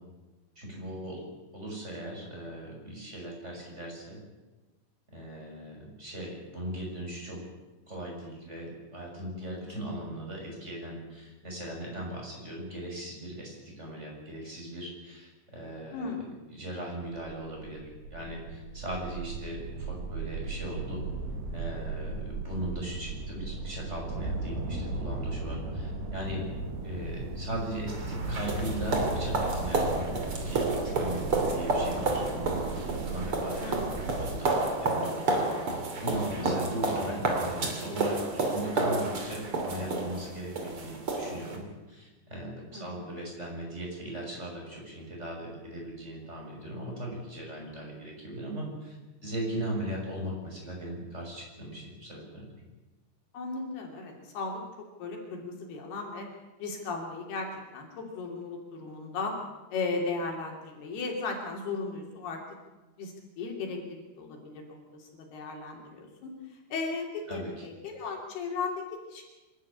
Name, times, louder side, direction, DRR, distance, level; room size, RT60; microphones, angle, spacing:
voice 1, 0.5-1.2 1.5-4.2 5.1-7.4 7.9-16.2 16.5-21.0 21.5-26.4 26.8-30.1 30.4-49.0 49.2-52.5 67.3-67.6, right 1 dB, 15° right, -1 dB, 6.6 m, -38 dB
voice 2, 15.9-16.4 33.6-33.9 36.4-36.6 42.7-43.1 53.3-56.3 56.6-59.3 59.7-62.4 63.0-66.3 66.7-69.2, left 4 dB, 65° left, 1 dB, 4.9 m, -36 dB
sound 1, 17.2-34.4, right 3 dB, 70° right, 4.6 m, -36 dB
sound 2, 27.9-41.6, right 2 dB, 35° right, 3.0 m, -30 dB
26.0 x 12.5 x 8.7 m, 1.1 s
omnidirectional pair, 5.0 m